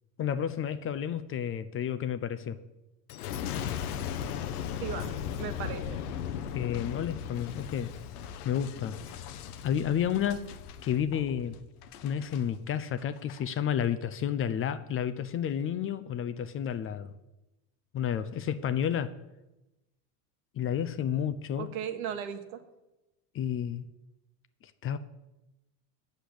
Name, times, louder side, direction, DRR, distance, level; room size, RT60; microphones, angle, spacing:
voice 1, 0.2-2.6 6.5-7.9 8.4-8.9 9.6-10.5 10.8-11.6 12.0-17.1 17.9-19.1 20.6-21.7 23.3-23.9 24.8-25.0, left 9 dB, 30° left, 0.5 m, -31 dB
Boom, 3.1-12.4 13.0-13.4, left 8 dB, 90° left, 0.8 m, -37 dB
voice 2, 4.8-6.0 21.6-22.6, right 8 dB, 75° right, 1.3 m, -37 dB
8.3 x 6.7 x 7.9 m
supercardioid pair, 110°, 44 cm